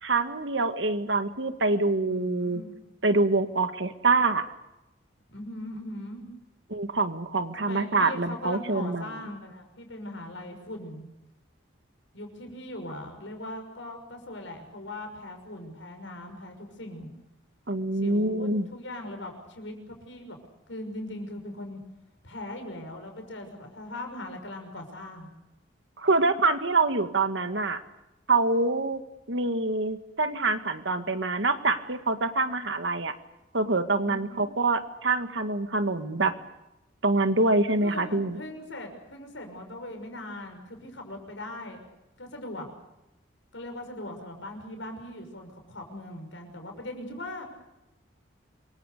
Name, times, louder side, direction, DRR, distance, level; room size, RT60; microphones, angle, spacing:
voice 1, 0.0-2.6 3.0-4.5 6.7-9.2 17.7-18.7 26.0-27.8 28.3-29.0 29.3-33.1 33.5-36.3 37.0-38.4, right 3 dB, 70° right, 9 dB, 1.9 m, -25 dB
voice 2, 2.0-2.7 5.3-6.3 7.6-11.1 12.1-17.1 18.0-20.4 20.7-21.8 22.2-25.3 34.0-34.5 37.8-41.8 42.2-42.7 43.5-47.4, left 1 dB, 75° left, 5 dB, 6.1 m, -40 dB
27.0 x 23.5 x 6.8 m, 0.95 s
head